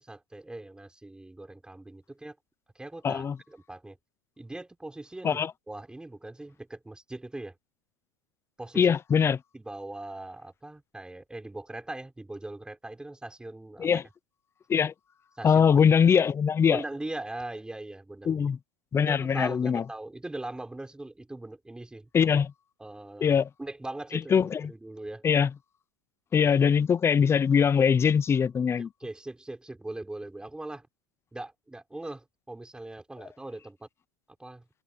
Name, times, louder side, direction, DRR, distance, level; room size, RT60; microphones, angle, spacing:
voice 1, 0.0-2.4 2.7-4.0 4.4-7.5 8.6-8.9 9.5-14.0 15.4-15.6 16.7-18.4 19.1-22.3 22.8-25.2 26.4-26.5 29.0-30.9 31.3-33.9 34.4-34.6, right 2 dB, 5° right, 4.9 m, -40 dB
voice 2, 3.0-3.4 5.2-5.5 8.8-9.4 13.8-14.0 14.7-14.9 15.4-16.8 18.3-18.6 18.9-19.8 22.1-22.5 23.2-23.5 24.3-24.7 25.2-25.5 26.3-28.9, left 7 dB, 15° left, 0.6 m, -22 dB
open air
supercardioid pair, 145°, 15 cm